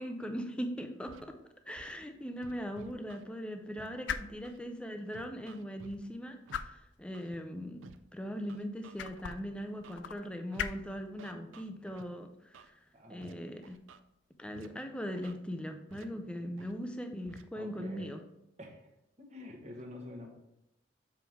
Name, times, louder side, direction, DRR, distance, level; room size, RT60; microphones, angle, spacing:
voice 1, 0.0-1.4 1.7-7.8 8.1-12.7 13.1-13.8 14.4-18.2, equal, 5° left, 5 dB, 0.5 m, -40 dB
sound 1, 1.0-14.6, left 7 dB, 65° left, 0.3 m, -46 dB
Scratching (performance technique), 1.1-1.2 1.7-1.9 2.4-3.2 3.8-3.9 4.4-4.6 5.1-6.0 6.5-6.6 7.1-7.4 7.8-8.0 8.5-9.3 9.8-10.0 10.5-10.7 11.2-12.0 12.5-12.7 13.2-13.3 13.6-14.0 14.5-14.7 15.1-15.3 15.9-16.0 16.6-16.7 17.2-17.4, right 5 dB, 90° right, 0.4 m, -53 dB
voice 2, 12.9-13.4 16.4-16.6 17.5-18.1 18.6-18.9 19.2-20.3, left 1 dB, 35° right, 1 dB, 1.2 m, -48 dB
7.1 x 4.5 x 3.5 m, 0.84 s
head